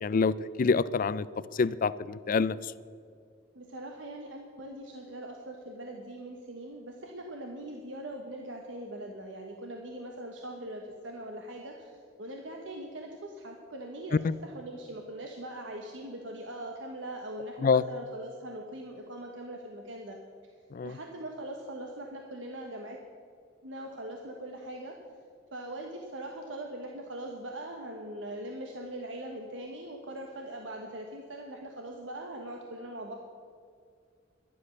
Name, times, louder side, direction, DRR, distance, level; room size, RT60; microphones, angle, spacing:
voice 1, 0.0-1.3 1.6-2.6 14.2-14.3 17.6-17.8 20.7-20.9, left 5 dB, 45° left, 17 dB, 0.4 m, -26 dB
voice 2, 3.5-20.2 20.8-23.0 23.6-24.9 25.5-33.1, right 1 dB, 70° right, 1 dB, 1.2 m, -41 dB
12.0 x 11.0 x 6.4 m, 2.2 s
head